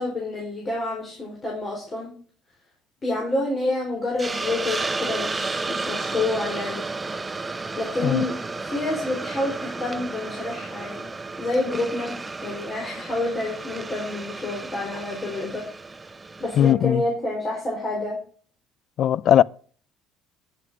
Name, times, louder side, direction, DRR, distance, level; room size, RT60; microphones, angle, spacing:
voice 1, 0.0-2.1 3.0-6.9 7.8-11.1 11.4-15.7 16.4-18.2, left 2 dB, 30° left, 4.2 m, -28 dB
Hiss, 4.2-16.7, right 3 dB, 20° right, 0.7 m, -32 dB
voice 2, 16.6-17.0 19.0-19.4, left 11 dB, 55° left, 0.4 m, -18 dB
9.6 x 7.9 x 4.8 m
cardioid pair, 110°, 0 cm